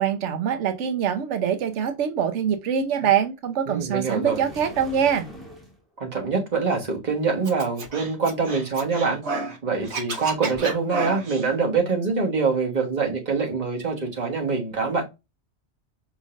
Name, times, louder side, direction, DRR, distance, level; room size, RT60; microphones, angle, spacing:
voice 1, 0.0-5.3, right 8 dB, 90° right, 1.0 m, -24 dB
voice 2, 3.7-4.4 6.0-9.2 9.6-15.0, right 4 dB, 40° right, 1.5 m, -24 dB
sound 1, 4.2-5.8, equal, ahead, 1.5 m, -41 dB
Scratching (performance technique), 7.5-9.6 9.8-11.4, right 3 dB, 70° right, 1.3 m, -31 dB
5.0 x 3.0 x 2.5 m
omnidirectional pair, 1.2 m